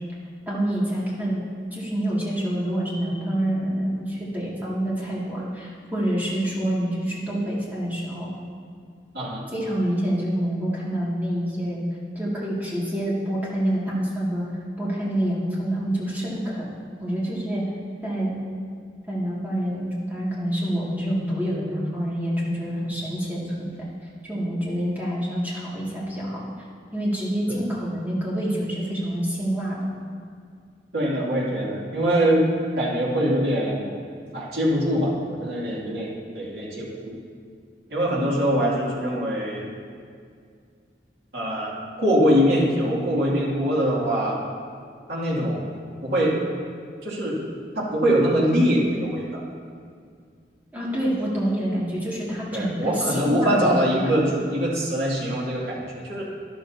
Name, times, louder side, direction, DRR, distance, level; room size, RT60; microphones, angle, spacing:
voice 1, 0.5-8.3 9.5-11.8 12.2-14.4 14.8-16.7 17.0-17.6 18.0-18.3 19.1-23.7 24.2-26.4 26.9-29.8 50.7-53.8, equal, 10° right, -7 dB, 2.2 m, -27 dB
voice 2, 30.9-32.4 32.8-33.8 34.3-37.2 37.9-39.7 41.3-44.4 45.1-45.7 46.0-46.4 47.0-47.4 47.7-49.4 52.5-55.8 56.0-56.2, equal, 70° right, -5 dB, 2.5 m, -23 dB
12.0 x 11.5 x 2.8 m, 2.1 s
head